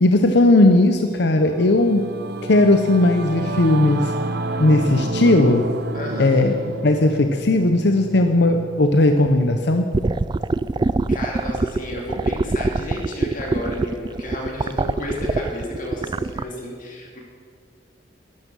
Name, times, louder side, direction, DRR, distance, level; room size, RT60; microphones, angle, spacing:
voice 1, 0.0-2.0 2.4-4.1 4.6-5.7 6.2-6.5 6.8-9.8, left 2 dB, 65° left, 6 dB, 0.7 m, -17 dB
Singing / Musical instrument, 1.1-10.8, right 2 dB, 60° right, 0.9 m, -30 dB
voice 2, 5.9-6.4 11.1-17.2, left 1 dB, 50° left, -1 dB, 2.8 m, -32 dB
sound 1, 9.9-16.4, right 3 dB, 25° right, 0.3 m, -23 dB
12.0 x 12.0 x 6.3 m, 2.2 s
head